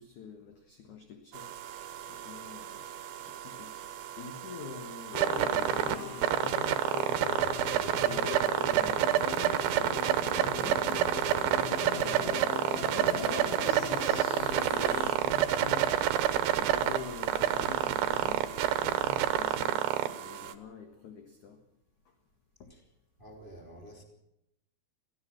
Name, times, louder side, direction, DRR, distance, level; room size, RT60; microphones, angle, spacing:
voice 1, 0.0-1.5 2.1-2.9 3.2-3.7 4.2-9.1 9.8-16.0 16.6-21.6 22.6-22.7, left 6 dB, 55° left, 5 dB, 2.5 m, -45 dB
sound 1, 1.3-20.5, right 11 dB, 70° right, 2.7 m, -29 dB
sound 2, 5.1-15.2, left 13 dB, 90° left, 3.2 m, -40 dB
sound 3, 14.4-19.6, right 6 dB, 35° right, 2.3 m, -49 dB
voice 2, 23.2-24.0, right 1 dB, 15° right, 1 dB, 2.2 m, -49 dB
22.5 x 15.5 x 7.4 m, 0.83 s
omnidirectional pair, 5.0 m